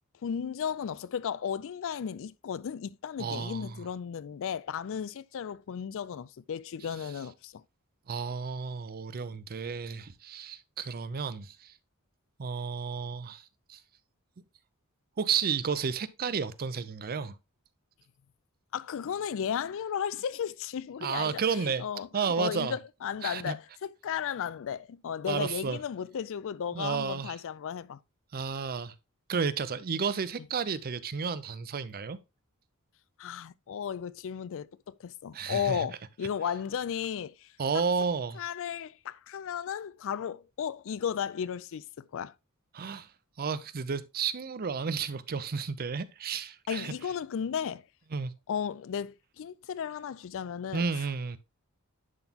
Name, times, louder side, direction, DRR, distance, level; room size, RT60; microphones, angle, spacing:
voice 1, 0.2-7.6 18.7-28.0 33.2-37.8 38.4-42.3 46.7-47.8 48.5-50.8, left 8 dB, 60° left, 0.4 m, -35 dB
voice 2, 3.2-3.8 8.1-11.7 12.4-13.4 13.7-13.8 15.2-17.4 21.0-21.8 22.1-22.8 23.2-23.5 25.3-25.8 26.7-27.3 28.3-28.9 29.3-32.2 35.3-35.9 37.6-38.4 42.7-43.1 43.4-46.9 48.1-48.3 50.7-51.4, right 5 dB, 40° right, 0.5 m, -32 dB
11.0 x 4.0 x 2.8 m
head